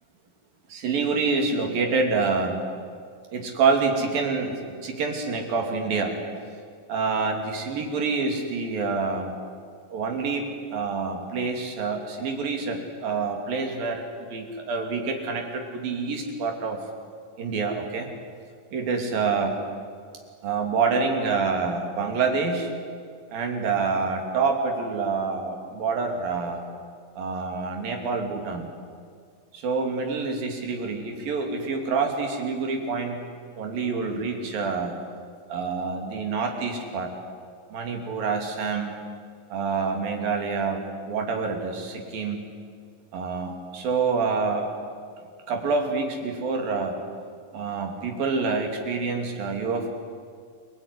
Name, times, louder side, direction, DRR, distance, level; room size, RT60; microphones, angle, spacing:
voice 1, 0.7-2.6 3.3-4.6 4.8-6.1 6.9-9.3 9.9-14.0 14.3-16.8 17.4-18.1 18.7-19.6 20.4-22.7 23.3-26.6 27.2-28.7 29.5-33.2 33.6-34.9 35.5-37.1 37.7-39.0 39.5-42.4 43.1-44.7 45.5-46.9 47.5-49.9, right 4 dB, 75° right, 3 dB, 4.6 m, -27 dB
28.5 x 19.0 x 9.9 m, 2.2 s
omnidirectional pair, 4.1 m